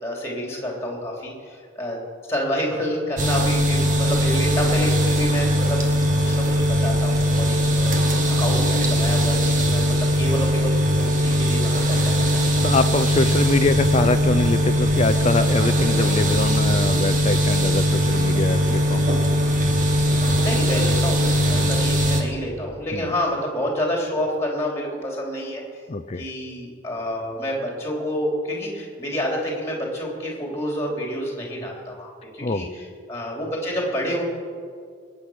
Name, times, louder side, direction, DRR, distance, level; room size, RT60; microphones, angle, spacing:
voice 1, 0.0-2.0 2.3-7.9 8.4-12.7 20.4-25.6 26.2-34.2, equal, 15° left, -1 dB, 3.1 m, -28 dB
sound 1, 3.2-22.2, equal, 40° right, 1.6 m, -20 dB
voice 2, 12.6-19.1 21.5-21.7 22.9-23.1 25.9-26.2 32.4-32.7, left 3 dB, 30° left, 9 dB, 0.5 m, -24 dB
21.0 x 8.4 x 6.3 m, 2.2 s
head